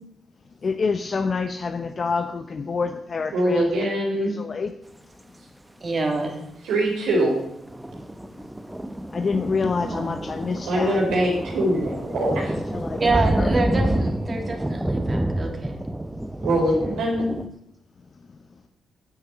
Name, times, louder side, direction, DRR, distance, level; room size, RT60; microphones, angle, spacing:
voice 1, 0.6-3.7 4.1-4.7 9.1-11.0 12.5-13.5, left 4 dB, 50° left, 7 dB, 0.8 m, -27 dB
voice 2, 3.3-4.3 6.6-7.4 10.7-12.5 16.4-17.3, right 1 dB, 80° right, -3 dB, 4.0 m, -22 dB
voice 3, 5.8-6.4 9.8-10.1 13.0-15.7, right 3 dB, 40° right, 2 dB, 3.0 m, -27 dB
sound 1, 7.6-17.5, right 1 dB, 10° right, 1.0 m, -28 dB
10.0 x 6.9 x 8.4 m, 0.79 s
supercardioid pair, 55°, 0 cm